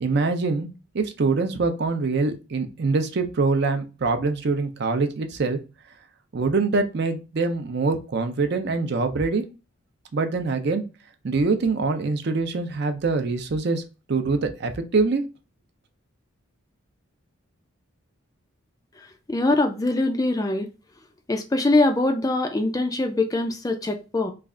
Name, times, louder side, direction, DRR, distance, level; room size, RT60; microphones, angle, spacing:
voice 1, 0.0-0.7 0.9-5.6 6.3-9.4 10.1-10.8 11.2-13.8 14.1-15.2, right 3 dB, 50° right, 0.5 m, -24 dB
voice 2, 19.3-20.7 21.3-24.3, left 2 dB, 15° left, 0.3 m, -23 dB
3.2 x 2.4 x 3.6 m
head